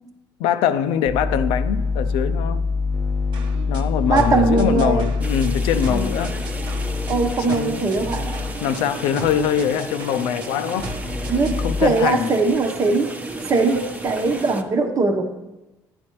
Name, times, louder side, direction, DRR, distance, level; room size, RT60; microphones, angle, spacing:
voice 1, 0.4-2.6 3.7-6.3 7.5-7.9 8.6-10.9 11.6-12.3, left 8 dB, 80° left, 0.6 m, -23 dB
sound 1, 1.1-7.3 8.0-8.5 10.8-11.8, left 4 dB, 20° left, 0.6 m, -25 dB
sound 2, 3.3-11.7, right 3 dB, 65° right, 1.1 m, -38 dB
voice 2, 4.1-5.1 5.9-6.1 7.1-8.4 11.3-13.1 13.5-15.3, right 3 dB, 40° right, 1.0 m, -21 dB
sound 3, 5.2-14.6, right 1 dB, 15° right, 0.9 m, -34 dB
11.0 x 8.9 x 3.1 m
supercardioid pair, 90°, 9 cm